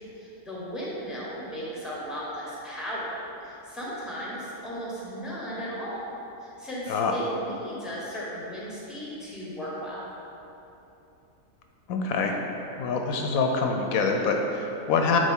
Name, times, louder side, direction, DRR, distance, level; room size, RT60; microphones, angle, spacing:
voice 1, 0.2-3.1 3.4-6.1 6.4-10.1, equal, ahead, -6 dB, 1.2 m, -36 dB
voice 2, 11.9-12.4 12.8-15.2, left 4 dB, 80° left, 3 dB, 1.0 m, -25 dB
9.3 x 3.5 x 3.6 m, 2.9 s
omnidirectional pair, 1.5 m